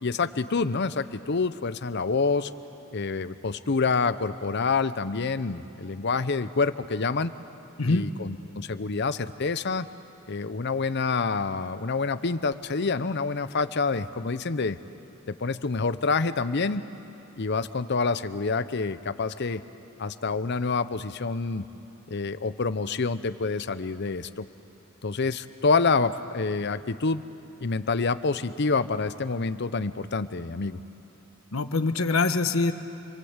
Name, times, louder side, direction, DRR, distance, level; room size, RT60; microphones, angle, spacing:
voice 1, 0.0-2.5 2.9-7.3 7.9-9.9 10.3-14.8 15.3-16.8 17.4-19.6 20.0-21.6 22.1-24.5 25.0-27.2 27.6-30.8, left 4 dB, 55° left, 13 dB, 0.7 m, -27 dB
voice 2, 31.5-32.7, left 3 dB, 85° left, 9 dB, 1.1 m, -24 dB
29.0 x 22.0 x 8.1 m, 2.9 s
head